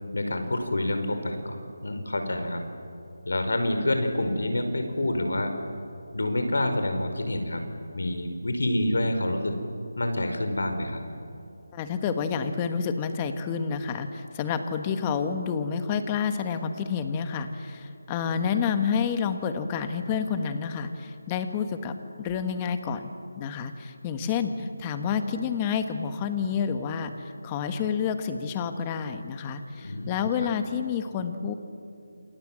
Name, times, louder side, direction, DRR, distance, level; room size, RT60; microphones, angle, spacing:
voice 1, 0.1-2.6 3.3-5.5 6.1-7.6 7.9-9.6 10.0-11.0 29.8-30.5, left 1 dB, 80° left, 6 dB, 5.2 m, -27 dB
voice 2, 11.7-31.5, left 6 dB, 15° left, 8 dB, 1.4 m, -29 dB
28.0 x 28.0 x 7.6 m, 2.6 s
figure-of-eight pair, 170°, 0 cm